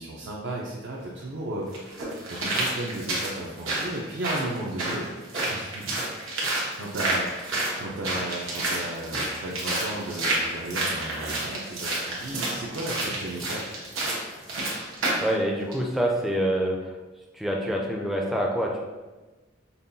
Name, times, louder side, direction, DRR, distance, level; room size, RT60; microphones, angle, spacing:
voice 1, 0.0-2.0 2.3-5.1 5.5-5.8 6.8-13.6, right 1 dB, 60° right, -4 dB, 0.5 m, -34 dB
sound 1, 0.9-1.0 1.7-15.3 15.7-15.8, right 2 dB, 85° right, 1.0 m, -30 dB
voice 2, 15.2-16.8 17.3-18.8, equal, ahead, -1 dB, 0.4 m, -26 dB
5.4 x 2.3 x 2.6 m, 1.2 s
head